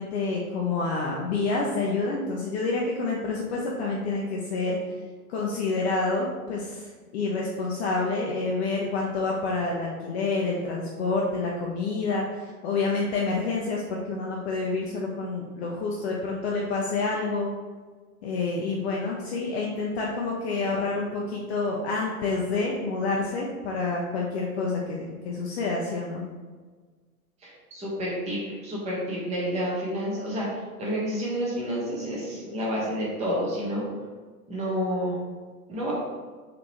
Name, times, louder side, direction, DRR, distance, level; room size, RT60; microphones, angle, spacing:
voice 1, 0.0-4.8 5.3-17.5 18.2-26.2, left 3 dB, 45° left, -2 dB, 0.6 m, -28 dB
voice 2, 27.4-33.9 34.5-35.2 35.7-35.9, equal, 15° right, -6 dB, 0.9 m, -29 dB
3.7 x 2.9 x 2.9 m, 1.4 s
figure-of-eight pair, 95°, 44 cm